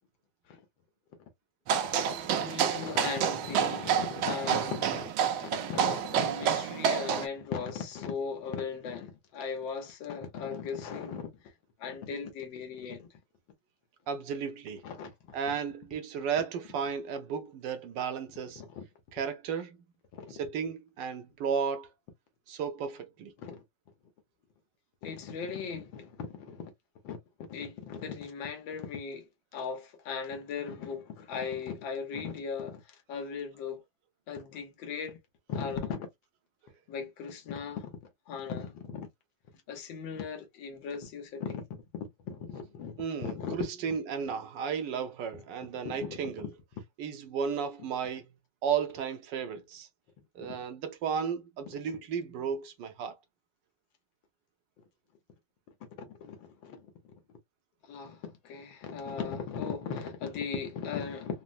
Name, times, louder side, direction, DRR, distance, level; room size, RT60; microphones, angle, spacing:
sound 1, 1.7-7.3, right 8 dB, 90° right, 1.4 m, -29 dB
voice 1, 2.3-5.1 5.4-11.4 11.8-13.1 14.8-15.4 18.6-18.8 20.1-20.4 23.4-23.6 25.0-26.7 27.0-27.2 27.5-33.8 34.3-35.2 35.5-36.1 36.9-37.9 38.3-39.1 39.7-43.7 45.8-46.5 50.5-50.6 56.0-56.8 57.9-61.4, left 6 dB, 75° left, 1.6 m, -38 dB
voice 2, 14.1-14.8 15.3-18.6 19.1-19.8 20.4-21.9 22.5-23.3 43.0-46.5 47.0-48.3 48.6-49.9 50.3-53.2, right 6 dB, 70° right, 1.2 m, -34 dB
3.9 x 2.0 x 2.5 m
omnidirectional pair, 2.1 m